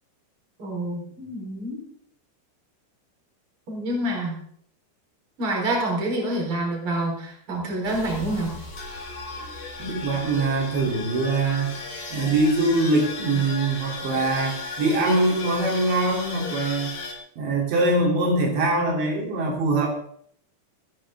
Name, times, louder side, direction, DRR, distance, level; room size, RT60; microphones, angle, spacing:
voice 1, 0.6-1.8 3.7-4.4 5.4-8.5, right 1 dB, 30° right, -1 dB, 5.2 m, -27 dB
sound 1, 7.8-17.1, left 3 dB, 65° left, 6.1 m, -36 dB
voice 2, 9.8-11.8 12.1-16.9 17.4-19.9, right 2 dB, 85° right, -1 dB, 5.8 m, -23 dB
27.0 x 10.5 x 3.8 m, 0.64 s
omnidirectional pair, 4.9 m